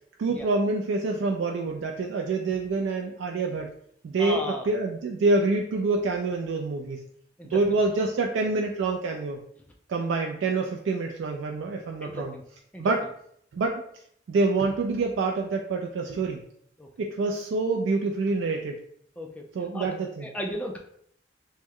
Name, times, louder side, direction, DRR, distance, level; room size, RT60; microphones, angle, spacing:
voice 1, 0.2-3.7 4.0-7.0 7.4-9.4 9.9-12.3 12.8-13.0 13.5-13.8 14.3-16.4 17.0-18.8 19.5-20.3, right 3 dB, 75° right, 1 dB, 0.3 m, -26 dB
voice 2, 4.2-4.7 7.4-7.6 12.0-12.4 12.7-12.8 16.8-16.9 19.2-19.4 19.7-19.9 20.2-20.8, equal, 5° left, 1 dB, 0.3 m, -34 dB
3.0 x 2.2 x 3.5 m, 0.67 s
head